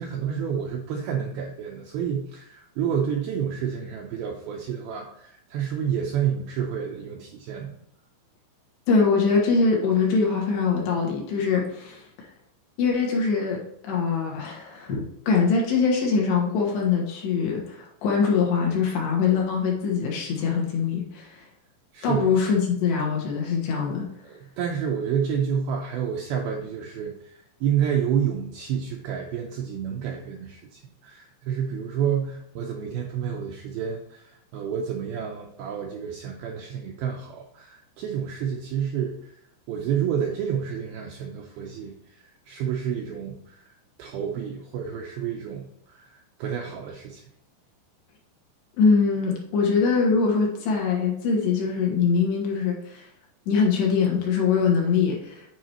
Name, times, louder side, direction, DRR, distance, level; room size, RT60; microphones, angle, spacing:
voice 1, 0.0-7.8 21.9-22.3 24.2-39.3 39.7-41.9 42.5-43.7 44.0-47.2, right 8 dB, 80° right, 1 dB, 2.2 m, -29 dB
voice 2, 8.9-12.3 12.8-21.4 22.0-24.1 48.8-53.1 53.5-55.4, left 5 dB, 70° left, -1 dB, 3.4 m, -23 dB
9.3 x 4.9 x 2.9 m, 0.77 s
omnidirectional pair, 5.1 m